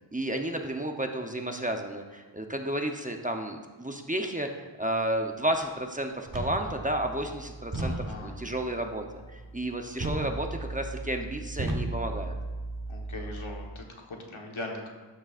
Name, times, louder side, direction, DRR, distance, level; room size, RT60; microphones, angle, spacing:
voice 1, 0.1-7.9 8.2-9.0 9.3-12.4, right 1 dB, 15° right, 4 dB, 0.8 m, -32 dB
sound 1, 6.3-13.7, right 2 dB, 45° right, 1.3 m, -36 dB
voice 2, 7.7-8.4 12.9-14.9, left 2 dB, 80° left, 1 dB, 1.3 m, -40 dB
12.5 x 6.3 x 2.5 m, 1.4 s
wide cardioid pair, 45°, 47 cm